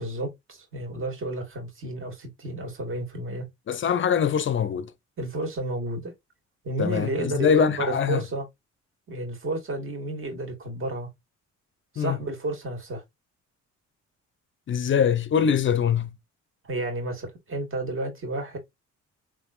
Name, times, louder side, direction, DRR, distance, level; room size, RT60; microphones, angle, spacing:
voice 1, 0.0-3.5 5.2-6.1 6.6-8.4 9.1-11.1 11.9-13.0 16.6-18.6, right 2 dB, 45° right, 2.0 m, -31 dB
voice 2, 3.7-4.9 6.8-8.2 12.0-12.2 14.7-16.2, left 7 dB, 40° left, 0.5 m, -23 dB
3.4 x 3.3 x 2.5 m
cardioid pair, 90°, 30 cm